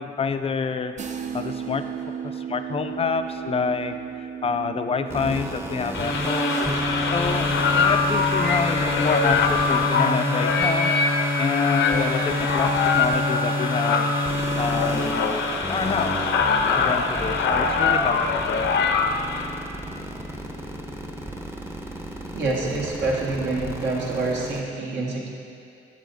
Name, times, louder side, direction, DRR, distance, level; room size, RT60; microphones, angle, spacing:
voice 1, 0.0-1.9 2.2-6.6 7.0-14.1 14.6-15.4 15.7-16.3 16.7-18.7, left 5 dB, 30° left, 9 dB, 0.4 m, -28 dB
sound 1, 1.0-10.6, right 7 dB, 35° right, 0.5 m, -37 dB
sound 2, 5.1-24.6, left 1 dB, 10° right, 0.8 m, -28 dB
sound 3, 5.9-19.5, left 5 dB, 70° left, 0.7 m, -24 dB
voice 2, 9.9-10.3 22.3-25.3, right 3 dB, 65° right, -3 dB, 1.6 m, -27 dB
11.5 x 7.4 x 2.6 m, 2.4 s
cardioid pair, 90°, 20 cm